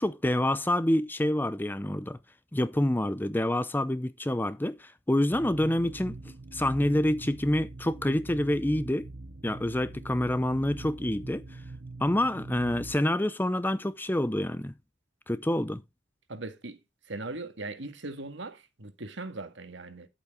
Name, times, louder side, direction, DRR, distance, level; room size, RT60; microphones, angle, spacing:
voice 1, 0.0-2.2 2.5-6.2 6.5-9.1 9.4-11.4 12.0-14.7 15.3-15.8, left 1 dB, 10° left, 0.5 m, -27 dB
sound 1, 5.3-12.9, right 2 dB, 45° right, 0.7 m, -43 dB
voice 2, 16.3-16.8 17.1-20.1, right 2 dB, 60° right, 1.8 m, -39 dB
11.5 x 8.4 x 3.7 m
head